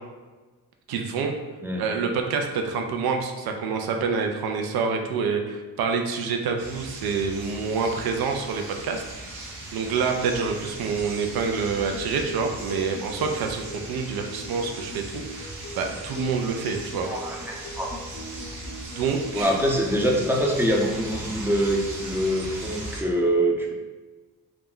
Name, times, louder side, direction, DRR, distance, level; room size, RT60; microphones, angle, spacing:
voice 1, 0.9-1.3 1.8-17.1 18.9-19.5, right 5 dB, 85° right, 4 dB, 0.5 m, -27 dB
sound 1, 6.6-23.0, right 1 dB, 55° right, 0.8 m, -38 dB
Acoustic guitar, 11.4-19.4, equal, 40° left, 0.7 m, -41 dB
voice 2, 17.0-17.9 19.3-23.7, equal, 5° right, -1 dB, 0.5 m, -24 dB
2.3 x 2.0 x 3.6 m, 1.3 s
cardioid pair, 75°, 36 cm